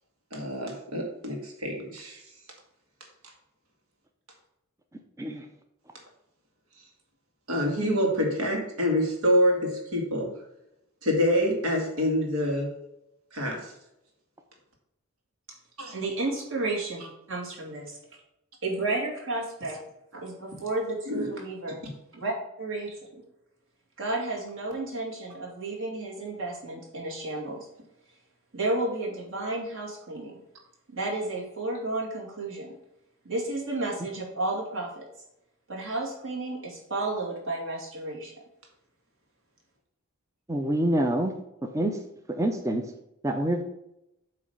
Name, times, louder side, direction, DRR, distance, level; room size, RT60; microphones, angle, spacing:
voice 1, 0.3-2.2 7.5-10.3 11.0-12.7 13.3-13.7 15.8-15.9 21.1-21.3, equal, 80° right, 1 dB, 2.1 m, -26 dB
voice 2, 15.9-17.0 17.3-18.0 18.6-19.8 20.1-21.8 22.1-22.3 22.6-23.2 24.0-27.7 28.5-30.3 30.9-32.7 33.2-35.0 35.7-38.3, right 2 dB, 65° right, -2 dB, 2.5 m, -32 dB
voice 3, 40.5-41.3 41.7-42.0 42.3-42.8 43.2-43.6, right 1 dB, 15° right, 5 dB, 0.5 m, -26 dB
8.3 x 3.1 x 6.4 m, 0.85 s
head